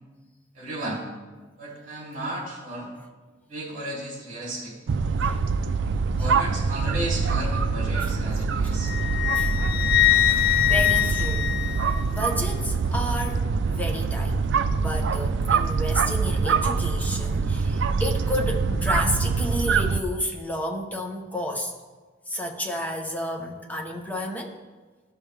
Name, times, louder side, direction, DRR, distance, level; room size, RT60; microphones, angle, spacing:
voice 1, 0.5-1.0 1.6-2.9 3.5-4.7 6.1-8.9, right 1 dB, 40° right, -4 dB, 2.9 m, -34 dB
sound 1, 4.9-20.0, right 4 dB, 65° right, 0.4 m, -25 dB
voice 2, 5.1-5.4 6.2-6.3 8.0-8.1 9.0-9.1 9.4-9.5 10.7-11.5 12.1-14.4 14.7-21.7 22.3-24.6, equal, 10° left, 2 dB, 0.9 m, -31 dB
Wind instrument woodwind instrument, 8.8-12.3, left 13 dB, 50° left, 0.3 m, -23 dB
14.5 x 5.5 x 3.3 m, 1.3 s
head